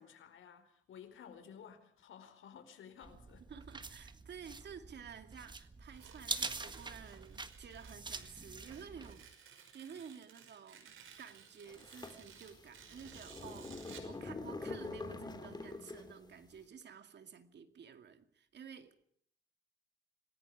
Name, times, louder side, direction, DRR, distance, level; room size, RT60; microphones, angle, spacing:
voice 1, 0.0-3.4, left 8 dB, 85° left, 4.6 m, -54 dB
sound 1, 3.0-9.2, right 3 dB, 20° right, 1.6 m, -45 dB
voice 2, 3.5-19.0, right 7 dB, 60° right, 2.3 m, -52 dB
Tearing, 5.8-14.2, right 7 dB, 90° right, 5.4 m, -58 dB
sound 2, 11.7-16.3, left 3 dB, 20° left, 3.3 m, -45 dB
27.0 x 20.0 x 4.9 m
cardioid pair, 130°, 20 cm